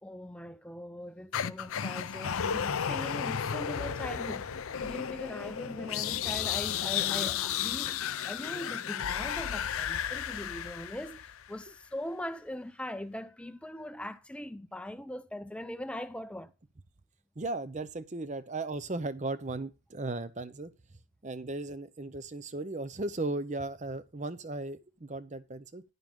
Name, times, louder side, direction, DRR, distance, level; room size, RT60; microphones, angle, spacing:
voice 1, 0.0-16.5, left 1 dB, 5° left, 0.6 m, -41 dB
sound 1, 1.3-11.5, left 9 dB, 70° left, 0.5 m, -33 dB
voice 2, 17.4-20.7 21.2-25.8, right 2 dB, 30° right, 0.7 m, -36 dB
10.5 x 9.4 x 3.7 m
head